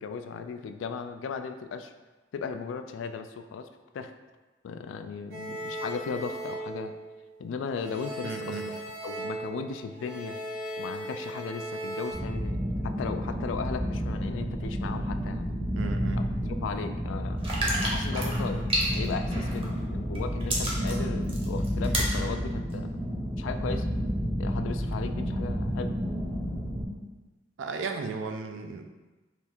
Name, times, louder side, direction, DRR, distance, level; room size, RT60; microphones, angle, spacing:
voice 1, 0.0-1.9 2.3-3.7 3.9-4.1 4.6-6.9 7.4-8.6 9.0-10.4 10.8-12.6 12.8-15.5 16.2-17.4 17.8-22.9 23.4-23.9 24.4-25.9, left 5 dB, 85° left, 8 dB, 0.3 m, -36 dB
sound 1, 5.3-7.4 7.8-12.1, right 1 dB, 55° right, 1.1 m, -37 dB
voice 2, 8.2-8.7 15.8-16.2 27.6-28.9, right 4 dB, 85° right, 6 dB, 0.4 m, -35 dB
sound 2, 12.1-26.9, equal, 5° right, 0.5 m, -30 dB
sound 3, 17.4-19.8 20.2-22.2 22.7-22.8, right 1 dB, 30° right, 0.8 m, -30 dB
3.5 x 2.4 x 4.2 m, 1.2 s
head